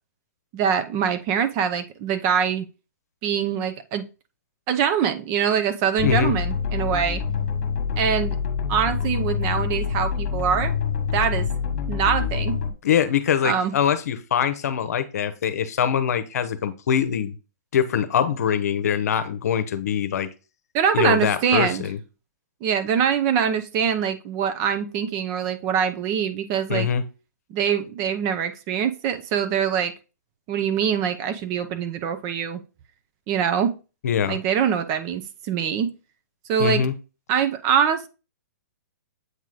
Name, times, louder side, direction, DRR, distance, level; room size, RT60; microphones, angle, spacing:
voice 1, 0.5-2.7 3.2-4.1 4.7-7.2 8.0-8.3 8.7-10.8 11.1-11.5 11.9-12.6 13.4-13.7 20.7-21.8 22.6-26.9 27.5-29.9 30.5-32.6 33.3-33.8 34.3-35.2 35.5-35.9 36.5-36.8 37.3-38.1, right 8 dB, 35° right, 0.7 m, -23 dB
voice 2, 6.0-6.3 12.8-17.4 17.7-20.3 20.9-22.0 26.7-27.0 34.0-34.4 36.6-36.9, left 8 dB, 70° left, 0.8 m, -23 dB
sound 1, 6.0-12.7, left 6 dB, 50° left, 1.4 m, -26 dB
8.1 x 3.1 x 3.8 m
hypercardioid pair, 140°, 9 cm